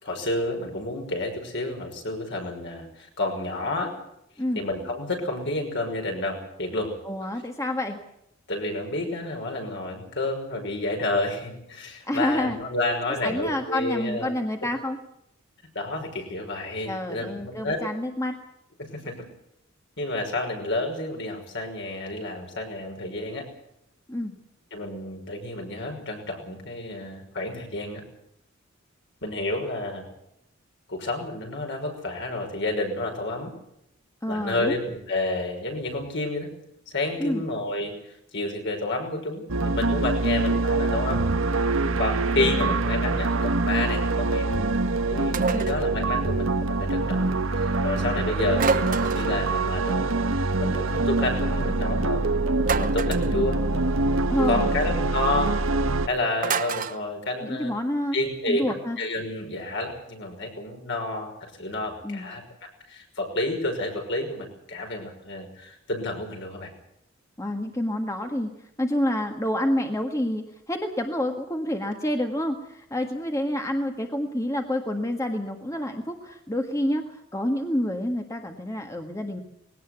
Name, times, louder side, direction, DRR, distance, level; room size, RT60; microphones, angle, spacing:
voice 1, 0.0-4.0 4.6-7.0 8.5-14.3 15.7-17.8 18.8-19.3 20.0-23.5 24.7-28.0 29.2-30.1 30.9-33.6 34.3-36.5 36.9-41.3 42.0-44.6 45.1-50.1 50.4-52.2 52.6-53.6 54.5-55.5 56.1-57.7 58.1-62.4 62.9-66.7, left 2 dB, 60° left, 2 dB, 5.9 m, -30 dB
voice 2, 7.1-8.0 12.1-12.6 13.2-15.0 16.9-18.4 24.1-24.3 34.2-34.7 37.2-37.5 42.4-42.8 45.5-45.7 54.3-54.7 57.4-58.2 58.5-59.0 62.0-62.3 67.4-68.5 68.8-79.4, left 1 dB, 15° left, 4 dB, 1.7 m, -28 dB
sound 1, 39.5-56.1, right 3 dB, 75° right, 1.2 m, -24 dB
sound 2, 45.3-45.8 48.6-49.4 52.6-53.3 56.4-57.0, right 5 dB, 45° right, 0.9 m, -27 dB
20.5 x 18.0 x 8.2 m, 0.80 s
head